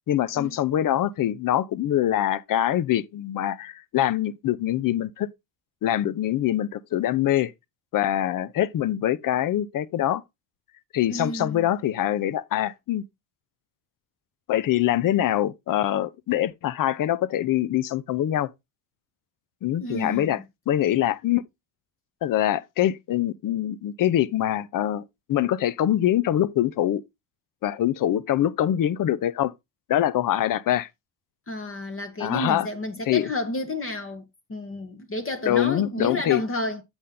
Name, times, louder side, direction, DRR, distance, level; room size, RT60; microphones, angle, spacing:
voice 1, 0.1-5.3 5.8-7.5 7.9-10.2 10.9-13.0 14.5-18.5 19.6-20.4 20.7-21.4 22.2-25.0 25.3-27.0 27.6-29.5 29.9-30.9 32.2-32.7 33.1-33.3 35.5-36.4, left 12 dB, 45° left, 0.7 m, -24 dB
voice 2, 11.1-11.7 19.8-20.4 31.5-34.2 34.5-36.8, left 1 dB, 30° left, 1.3 m, -31 dB
8.0 x 4.4 x 3.7 m
supercardioid pair, 90°, 45 cm